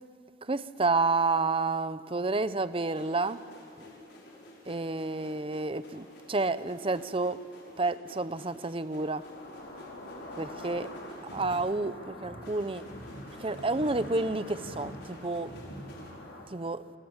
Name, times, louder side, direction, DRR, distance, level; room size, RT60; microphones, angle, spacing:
voice 1, 0.4-3.4 4.7-7.4 7.8-9.2 10.4-10.9 11.3-12.9 13.4-15.5 16.5-16.8, right 3 dB, 30° right, 14 dB, 0.8 m, -30 dB
sound 1, 2.8-16.1, equal, 60° left, 5.3 m, -48 dB
sound 2, 9.0-16.4, left 1 dB, 85° left, 4.9 m, -46 dB
27.5 x 23.0 x 7.3 m, 2.3 s
head